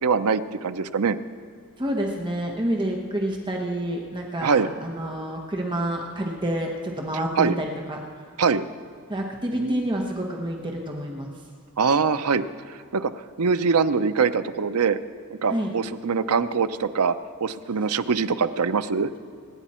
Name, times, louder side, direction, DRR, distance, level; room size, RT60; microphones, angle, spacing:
voice 1, 0.0-1.2 4.4-4.7 7.4-7.6 8.4-8.6 9.5-9.8 11.8-12.4 12.9-13.1 13.4-15.0 15.3-17.2 17.4-19.1, right 5 dB, 75° right, 12 dB, 0.6 m, -23 dB
voice 2, 1.8-8.0 9.1-11.3 15.5-15.7, right 1 dB, 20° right, 1 dB, 1.2 m, -28 dB
25.5 x 10.0 x 4.4 m, 2.2 s
head